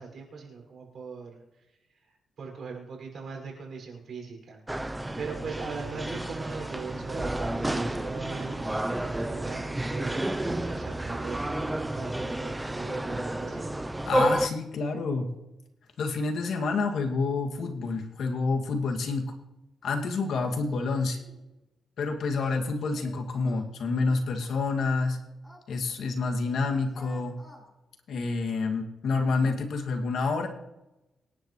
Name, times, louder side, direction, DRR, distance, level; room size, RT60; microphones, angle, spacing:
voice 1, 0.0-1.4 2.4-4.6 5.2-13.7, right 5 dB, 60° right, 1 dB, 6.1 m, -40 dB
sound 1, 4.7-14.5, right 1 dB, 10° right, 0.7 m, -31 dB
voice 2, 14.1-15.3 16.0-19.2 19.8-21.2 22.0-25.2 25.7-27.4 28.1-30.5, left 4 dB, 75° left, 1 dB, 2.4 m, -28 dB
Singing, 19.8-20.1 20.5-20.9 21.1-21.4 22.2-23.8 24.4-26.2 26.4-27.7, left 1 dB, 15° left, 4.3 m, -53 dB
27.0 x 10.5 x 3.3 m, 0.98 s
cardioid pair, 105°, 0 cm